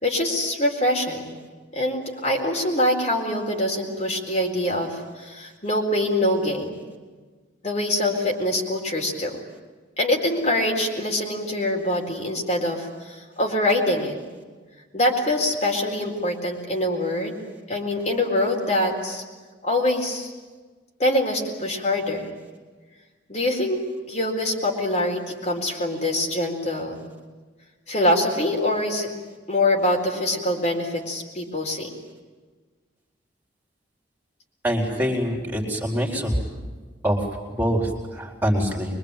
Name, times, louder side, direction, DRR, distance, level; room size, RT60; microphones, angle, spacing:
voice 1, 0.0-1.3 1.7-6.7 7.6-9.4 10.0-14.1 14.9-17.4 17.7-19.2 19.6-20.3 21.0-22.3 23.3-23.8 24.1-27.1 27.9-29.1 29.5-31.9, left 1 dB, 35° left, 0 dB, 4.2 m, -24 dB
voice 2, 34.6-36.4 37.0-37.2 37.5-39.0, equal, 10° right, 0 dB, 4.3 m, -24 dB
24.5 x 23.5 x 9.1 m, 1.4 s
head